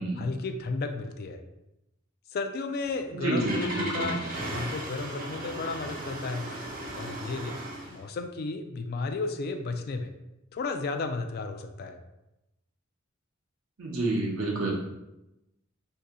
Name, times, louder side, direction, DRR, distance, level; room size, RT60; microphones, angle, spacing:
voice 1, 0.2-1.4 2.3-6.5 6.9-7.6 7.9-10.1 10.5-12.0, left 3 dB, 50° left, 6 dB, 0.3 m, -33 dB
Engine starting, 2.8-8.0, right 1 dB, 45° right, 0.7 m, -37 dB
voice 2, 3.1-4.1 13.8-14.7, right 2 dB, 85° right, -3 dB, 0.7 m, -29 dB
2.7 x 2.7 x 3.6 m, 0.92 s
head